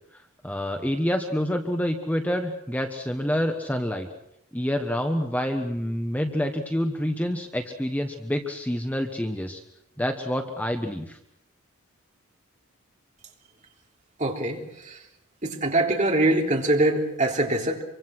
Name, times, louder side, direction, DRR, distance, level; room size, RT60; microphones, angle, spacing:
voice 1, 0.4-4.1 4.5-9.6 10.0-11.2, equal, 5° left, 5 dB, 1.2 m, -27 dB
voice 2, 14.2-15.0 15.4-17.8, right 2 dB, 35° right, 1 dB, 3.7 m, -23 dB
26.0 x 24.0 x 6.1 m, 0.78 s
head